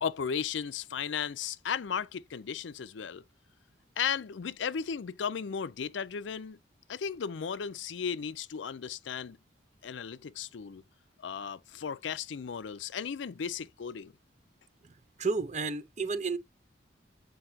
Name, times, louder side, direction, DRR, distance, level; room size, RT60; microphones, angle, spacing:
voice 1, 0.0-3.2 4.0-6.6 6.9-9.4 9.8-10.8 11.2-14.1, left 7 dB, 75° left, 0.5 m, -35 dB
voice 2, 15.2-16.4, right 4 dB, 40° right, 0.6 m, -31 dB
7.8 x 5.3 x 2.7 m
head